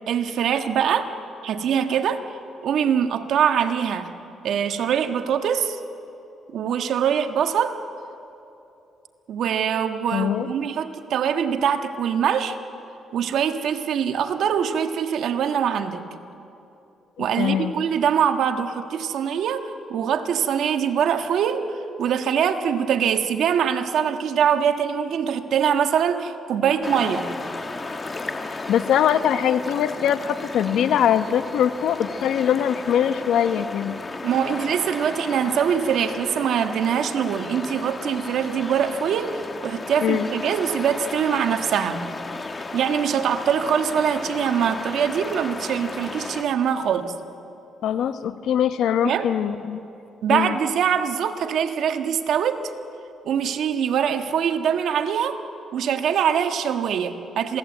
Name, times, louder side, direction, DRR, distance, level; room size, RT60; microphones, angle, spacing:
voice 1, 0.1-1.1 1.4-2.2 2.6-4.2 4.4-5.8 6.5-7.8 9.3-12.6 13.1-16.0 17.2-27.3 34.2-42.0 42.7-47.1 49.0-49.3 50.2-52.7 53.2-55.4 55.7-57.6, right 8 dB, 70° right, 6 dB, 1.5 m, -23 dB
voice 2, 10.1-10.5 17.2-17.8 28.7-34.0 40.0-40.3 47.8-49.8 50.3-50.6, left 9 dB, 75° left, 10 dB, 1.1 m, -22 dB
sound 1, 26.8-46.4, left 3 dB, 30° left, 1.8 m, -34 dB
27.5 x 18.0 x 8.1 m, 2.8 s
cardioid pair, 90°, 0 cm